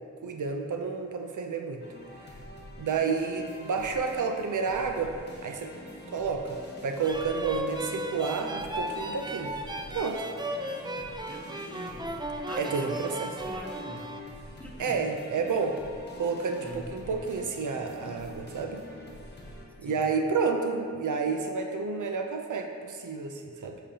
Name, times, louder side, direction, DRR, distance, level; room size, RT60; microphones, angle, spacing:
voice 1, 0.2-1.8 2.8-5.2 5.4-5.7 6.1-9.5 9.9-10.3 12.4-13.3 14.8-15.8 16.2-18.8 19.8-23.8, right 5 dB, 90° right, 4 dB, 0.5 m, -30 dB
sound 1, 1.8-19.6, left 1 dB, 35° left, 1.2 m, -46 dB
sound 2, 7.0-14.2, right 1 dB, 15° right, 0.4 m, -36 dB
voice 2, 11.3-12.2 12.5-13.2 13.4-14.1 14.6-15.0 16.6-17.3 19.8-20.0, equal, 5° left, -1 dB, 0.9 m, -43 dB
7.6 x 5.0 x 2.8 m, 2.3 s
wide cardioid pair, 50°, 30 cm